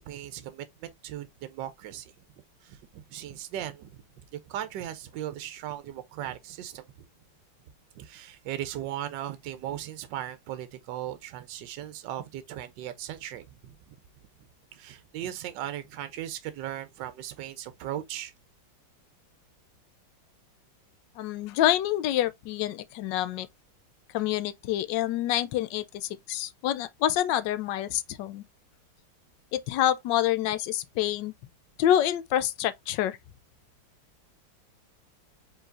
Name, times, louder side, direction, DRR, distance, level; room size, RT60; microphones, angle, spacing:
voice 1, 0.0-2.1 2.6-6.8 7.9-14.0 14.7-18.3, right 12 dB, 75° right, 1.2 m, -38 dB
voice 2, 21.2-23.5 24.1-28.4 29.5-31.3 31.8-33.2, left 12 dB, 75° left, 1.2 m, -27 dB
4.6 x 3.9 x 2.4 m
omnidirectional pair, 2.0 m